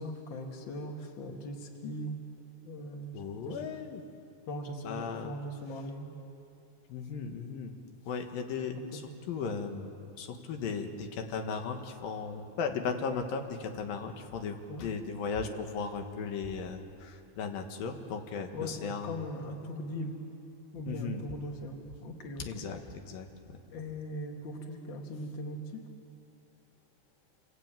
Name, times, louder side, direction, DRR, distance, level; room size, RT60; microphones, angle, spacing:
voice 1, 0.0-2.2 2.6-3.6 4.5-6.1 8.7-9.0 14.7-14.8 18.5-20.1 20.7-22.7 23.7-25.8, equal, 35° left, 2 dB, 2.8 m, -40 dB
voice 2, 3.1-4.0 4.9-5.3 6.9-7.7 8.1-9.0 9.3-9.9 10.2-19.1 20.9-21.2 22.5-22.8 23.1-23.6, left 5 dB, 90° left, 5 dB, 3.4 m, -36 dB
28.5 x 23.0 x 9.1 m, 2.6 s
omnidirectional pair, 3.9 m